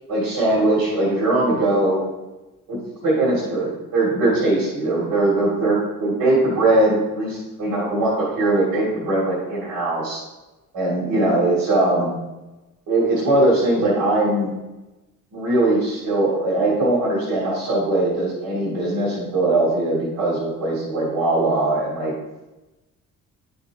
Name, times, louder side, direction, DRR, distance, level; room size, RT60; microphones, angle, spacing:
voice 1, 0.1-2.0 2.7-10.2 10.7-12.1 12.9-14.5 15.3-22.1, right 2 dB, 90° right, -7 dB, 2.8 m, -20 dB
10.5 x 5.5 x 3.6 m, 1.1 s
cardioid pair, 90°, 33 cm